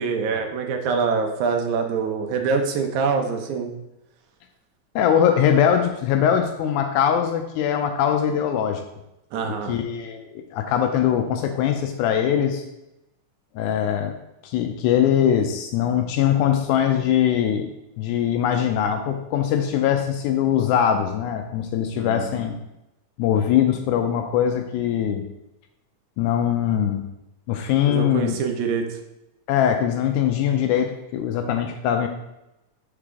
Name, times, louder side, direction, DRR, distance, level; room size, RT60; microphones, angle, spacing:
voice 1, 0.0-3.7 9.3-9.8 21.9-22.5 27.8-29.0, right 5 dB, 80° right, 4 dB, 2.1 m, -25 dB
voice 2, 5.0-8.8 9.7-12.6 13.6-14.1 14.4-22.6 23.2-25.2 26.2-27.0 27.5-28.4 29.5-32.1, left 9 dB, 85° left, 5 dB, 2.0 m, -22 dB
5.8 x 4.8 x 3.6 m, 0.89 s
omnidirectional pair, 3.4 m